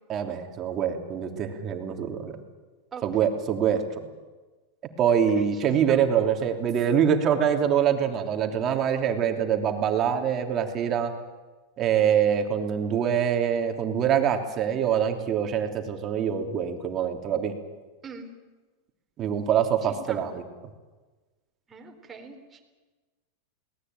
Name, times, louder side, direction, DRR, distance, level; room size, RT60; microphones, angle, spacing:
voice 1, 0.1-2.3 3.0-4.1 5.0-11.1 11.8-17.5 19.2-20.4, right 8 dB, 35° right, 4 dB, 3.1 m, -24 dB
voice 2, 2.9-3.4 5.1-5.6 5.9-6.0 18.0-18.3 20.1-20.3 21.7-22.6, right 5 dB, 20° right, 3 dB, 4.0 m, -43 dB
22.5 x 18.5 x 9.3 m, 1.3 s
supercardioid pair, 135°, 0 cm